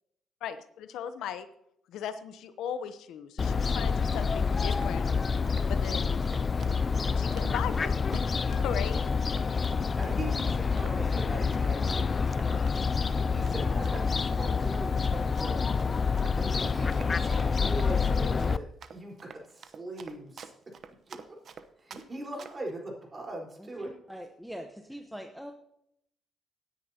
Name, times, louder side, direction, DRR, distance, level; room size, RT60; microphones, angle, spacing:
voice 1, 0.4-1.5 1.9-5.0 5.7-6.2 7.2-9.1, left 8 dB, 85° left, 11 dB, 0.8 m, -37 dB
Fowl, 3.4-18.6, left 5 dB, 35° left, 0.4 m, -27 dB
Run, 4.5-22.1 22.4-22.7, right 6 dB, 55° right, 0.9 m, -48 dB
voice 2, 10.0-12.8 13.3-15.6 16.4-20.5 21.1-21.4 21.8-23.9, right 1 dB, 30° right, -1 dB, 4.2 m, -40 dB
voice 3, 23.6-25.5, equal, ahead, 3 dB, 1.0 m, -43 dB
17.5 x 9.8 x 2.9 m, 0.74 s
cardioid pair, 90°, 0 cm